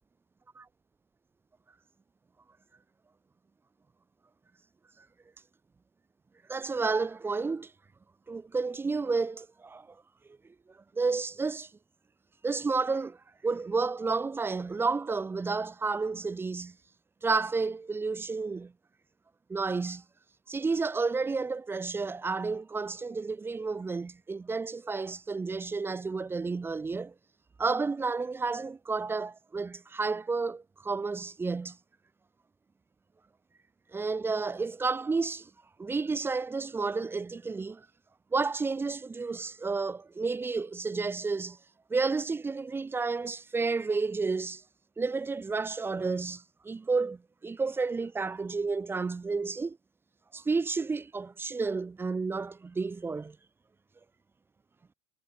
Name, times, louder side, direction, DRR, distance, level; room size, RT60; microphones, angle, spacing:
voice 1, 6.5-7.7 8.3-10.0 10.9-11.7 12.4-13.2 13.4-16.7 17.2-18.7 19.5-20.0 20.5-27.1 27.6-31.8 33.9-35.5 35.8-37.9 38.3-41.6 41.9-44.6 45.0-49.8 50.3-53.4, right 4 dB, 15° right, 0.6 m, -31 dB
hypercardioid pair, 80°, 16 cm